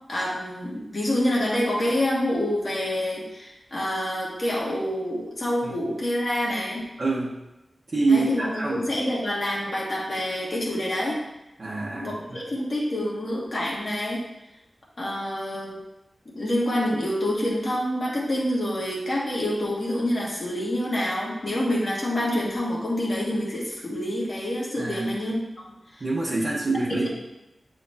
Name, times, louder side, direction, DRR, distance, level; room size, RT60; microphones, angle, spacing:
voice 1, 0.0-6.8 8.1-11.2 12.0-14.2 15.0-15.8 16.3-26.0 26.9-27.1, left 1 dB, 45° left, -5 dB, 2.2 m, -27 dB
voice 2, 7.0-7.3 7.9-8.9 11.6-12.4 24.8-25.2 26.0-27.1, right 3 dB, 45° right, -7 dB, 1.3 m, -26 dB
9.1 x 4.5 x 2.9 m, 0.94 s
wide cardioid pair, 90°, 0 cm